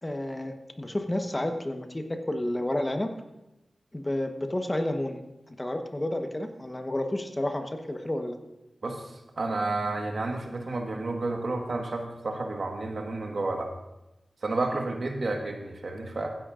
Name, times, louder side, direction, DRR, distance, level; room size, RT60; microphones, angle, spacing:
voice 1, 0.0-3.1 3.9-5.2 5.5-8.3, left 1 dB, 25° left, 5 dB, 1.2 m, -30 dB
voice 2, 9.4-13.7 14.4-16.3, right 2 dB, 65° right, 2 dB, 1.5 m, -31 dB
15.0 x 10.5 x 2.6 m, 0.96 s
cardioid pair, 45°, 0 cm